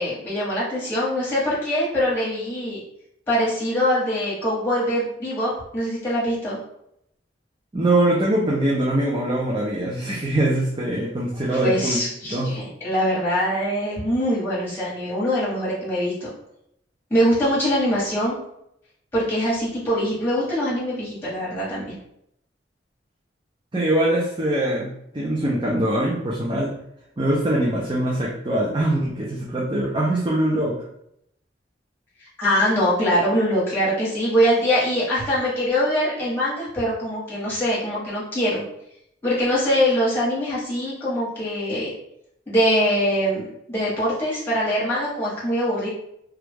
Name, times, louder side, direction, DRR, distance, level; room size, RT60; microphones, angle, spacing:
voice 1, 0.0-2.8 3.3-6.6 11.6-16.3 17.1-18.3 19.1-21.9 32.4-38.6 39.2-41.9 42.5-45.9, equal, 10° left, -8 dB, 1.3 m, -23 dB
voice 2, 7.7-12.0 12.3-12.5 23.7-26.7 27.2-30.8, right 1 dB, 25° right, -5 dB, 0.5 m, -22 dB
3.0 x 2.4 x 3.5 m, 0.75 s
head